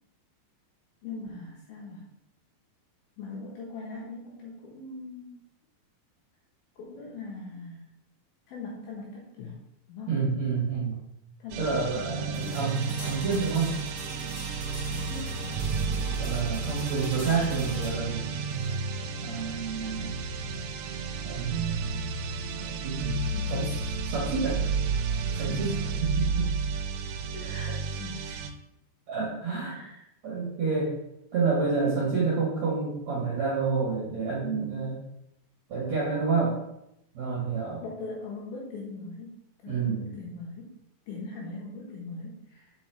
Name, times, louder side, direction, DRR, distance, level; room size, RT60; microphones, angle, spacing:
voice 1, 1.0-2.1 3.2-5.4 6.8-7.9 8.5-9.6 9.9-10.3 11.4-12.7 14.8-16.4 23.3-23.7 25.3-25.7 27.3-28.4 29.6-30.0 37.8-39.4 39.6-40.8 41.1-42.7, left 3 dB, 75° left, -3 dB, 2.3 m, -41 dB
voice 2, 10.1-11.0 11.6-13.7 16.1-18.2 18.6-18.8 19.2-20.2 21.2-21.6 22.8-23.2 23.5-23.8 24.1-24.6 25.4-26.5 29.1-29.8 30.2-31.0 31.3-35.0 35.7-36.6 37.1-37.8 39.7-40.0, right 4 dB, 60° right, -5 dB, 1.9 m, -29 dB
sound 1, 11.5-28.5, right 4 dB, 80° right, 2.7 m, -31 dB
sound 2, 12.3-22.2, equal, 5° right, 0.7 m, -44 dB
5.4 x 5.4 x 4.5 m, 0.81 s
omnidirectional pair, 5.3 m